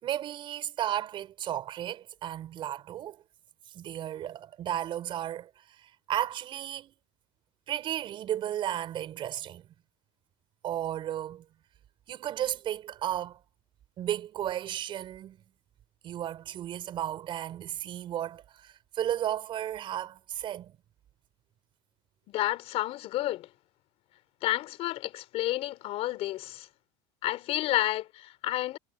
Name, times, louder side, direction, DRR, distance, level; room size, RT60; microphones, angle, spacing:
voice 1, 0.0-3.2 3.7-5.5 5.8-6.9 7.7-9.7 10.6-11.4 12.1-13.4 14.0-15.4 16.0-20.8, right 11 dB, 40° right, 5.5 m, -34 dB
voice 2, 22.3-23.5 24.4-26.7 27.2-28.8, left 15 dB, 50° left, 4.3 m, -30 dB
supercardioid pair, 140°, 13 cm